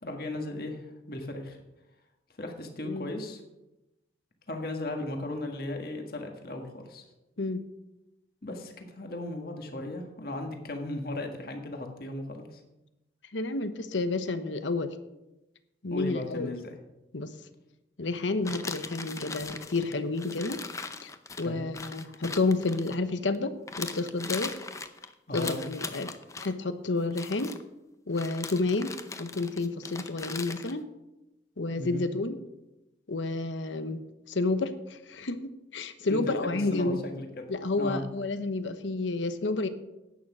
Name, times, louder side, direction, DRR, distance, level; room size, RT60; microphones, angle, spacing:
voice 1, 0.0-1.6 2.4-3.4 4.5-7.0 8.4-12.6 15.9-16.7 21.4-21.6 25.3-25.5 31.8-32.1 36.1-37.4 37.8-38.0, left 1 dB, 55° left, 3 dB, 1.7 m, -36 dB
voice 2, 13.3-14.9 15.8-16.6 17.1-17.3 18.0-20.6 21.0-21.1 21.4-24.5 25.3-26.1 26.4-27.5 28.1-28.9 29.2-30.9 31.6-32.4 33.1-34.0 34.3-37.0 37.5-39.7, left 3 dB, 90° left, 11 dB, 0.9 m, -30 dB
sound 1, 18.5-23.4 23.7-26.5 27.1-27.6 28.1-30.7, left 4 dB, 15° left, 0.6 m, -39 dB
11.0 x 8.9 x 6.1 m, 0.96 s
head